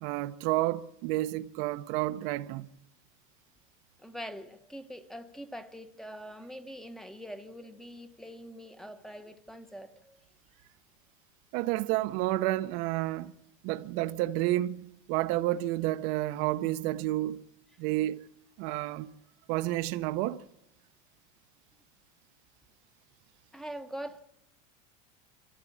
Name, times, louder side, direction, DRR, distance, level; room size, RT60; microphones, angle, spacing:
voice 1, 0.0-2.7 11.5-13.3 13.6-17.4 17.8-18.2 18.6-19.1 19.5-20.4, right 16 dB, 60° right, 0.7 m, -30 dB
voice 2, 4.0-10.2 18.7-18.9 23.5-24.2, equal, ahead, 0.9 m, -43 dB
25.5 x 14.5 x 8.5 m
supercardioid pair, 145°, 18 cm